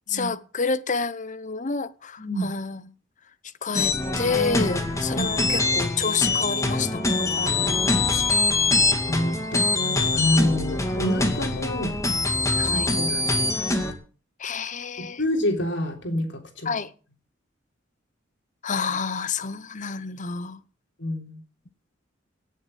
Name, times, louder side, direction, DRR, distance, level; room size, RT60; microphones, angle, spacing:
voice 1, 0.1-2.8 3.4-8.4 12.6-12.9 14.4-15.2 16.6-16.9 18.6-20.6, left 5 dB, 40° left, 0.9 m, -29 dB
sound 1, 3.7-13.9, left 3 dB, 15° left, 2.2 m, -24 dB
voice 2, 9.0-11.9 12.6-13.2 15.2-16.8 21.0-21.4, left 1 dB, 70° left, 3.6 m, -27 dB
18.0 x 7.4 x 7.4 m
head